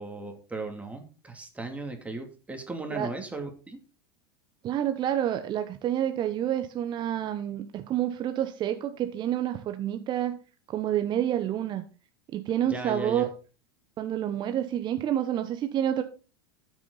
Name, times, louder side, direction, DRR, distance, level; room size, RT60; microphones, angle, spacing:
voice 1, 0.0-3.8 12.6-13.3, right 3 dB, 10° right, 4 dB, 2.8 m, -36 dB
voice 2, 4.6-10.4 10.7-11.8 12.3-13.3 14.0-16.0, right 11 dB, 35° right, 8 dB, 1.0 m, -28 dB
13.5 x 6.1 x 4.1 m, 0.34 s
hypercardioid pair, 100°, 13 cm